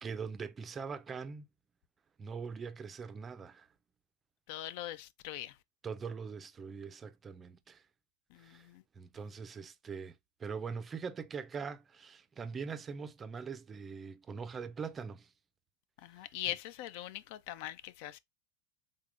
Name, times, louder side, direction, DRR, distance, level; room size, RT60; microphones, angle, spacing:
voice 1, 0.0-1.5 2.2-3.7 5.8-7.8 8.4-8.7 9.0-15.3 16.2-16.3, right 5 dB, 20° right, 0.4 m, -42 dB
voice 2, 4.5-5.6 8.3-8.8 16.0-18.2, left 13 dB, 60° left, 0.3 m, -41 dB
3.7 x 3.4 x 2.5 m
supercardioid pair, 135°, 0 cm